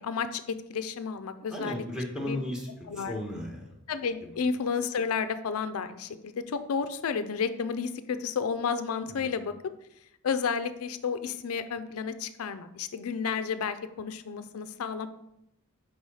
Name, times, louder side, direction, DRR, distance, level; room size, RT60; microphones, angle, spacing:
voice 1, 0.0-1.8 2.2-2.4 2.9-3.1 3.9-9.5 10.2-15.1, left 6 dB, 85° left, 11 dB, 0.4 m, -31 dB
voice 2, 1.5-3.8 9.1-9.2, left 1 dB, 5° right, -1 dB, 1.3 m, -35 dB
4.8 x 4.7 x 5.5 m, 0.81 s
head